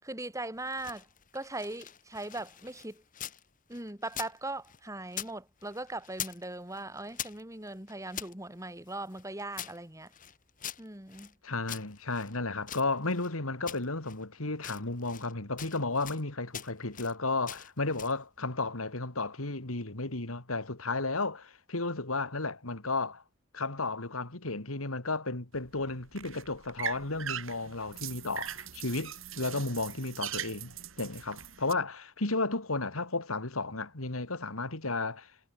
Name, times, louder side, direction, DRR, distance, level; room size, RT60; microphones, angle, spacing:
voice 1, 0.0-1.1 1.3-3.0 3.7-10.1 10.8-11.3, right 2 dB, 15° right, 3.8 m, -39 dB
sound 1, 0.6-3.4 3.7-5.3 5.6-6.4 6.7-8.3 8.9-11.3 11.7-13.3 13.7-14.2 14.5-15.3 15.6-16.2 16.5-17.1 17.5-18.2, left 10 dB, 40° left, 1.9 m, -43 dB
voice 2, 11.4-23.2 23.5-35.3, left 3 dB, 85° left, 2.9 m, -33 dB
sound 2, 25.5-31.7, right 9 dB, 70° right, 4.3 m, -41 dB
head